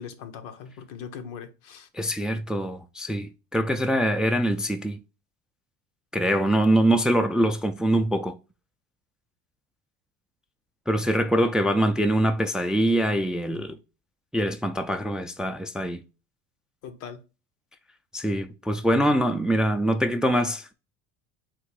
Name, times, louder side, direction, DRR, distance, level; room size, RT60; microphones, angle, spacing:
voice 1, 0.0-1.9 16.8-17.2, left 7 dB, 80° left, 0.9 m, -40 dB
voice 2, 1.9-5.0 6.1-8.4 10.9-13.8 14.3-16.0 18.1-20.7, right 1 dB, ahead, 0.3 m, -24 dB
3.7 x 2.6 x 4.7 m
supercardioid pair, 100°, 32 cm